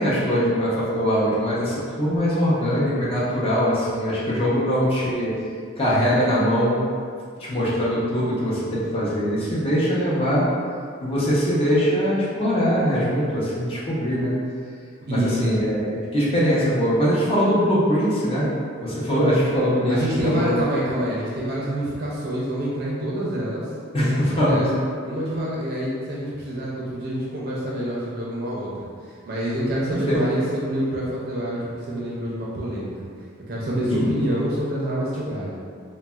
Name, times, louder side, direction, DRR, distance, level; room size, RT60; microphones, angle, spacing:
voice 1, 0.0-5.3 5.8-6.8 7.4-10.4 11.0-14.4 15.1-18.5 18.8-20.6 23.9-24.7 29.9-30.2 33.9-34.1, equal, 25° left, -8 dB, 0.6 m, -22 dB
voice 2, 15.1-15.6 19.9-23.7 24.0-24.7 25.0-28.7 29.0-33.1 33.5-35.6, right 1 dB, 50° right, -6 dB, 0.4 m, -27 dB
4.0 x 2.0 x 2.3 m, 2.2 s
head